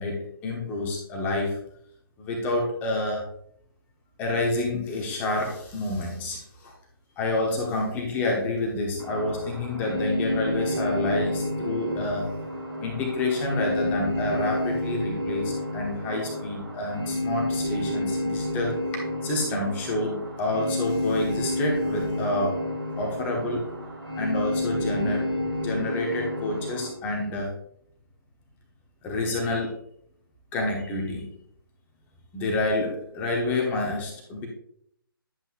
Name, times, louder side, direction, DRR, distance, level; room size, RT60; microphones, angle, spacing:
voice 1, 0.0-1.6 2.2-3.2 4.2-6.7 7.2-12.2 12.8-18.8 19.2-22.6 23.0-23.7 24.1-27.5 29.0-29.7 30.5-31.3 32.3-34.5, left 2 dB, 15° left, 0 dB, 1.2 m, -28 dB
sound 1, 9.0-26.9, left 1 dB, 75° right, 2.4 m, -30 dB
10.5 x 7.9 x 2.5 m, 0.69 s
figure-of-eight pair, 140°, 12 cm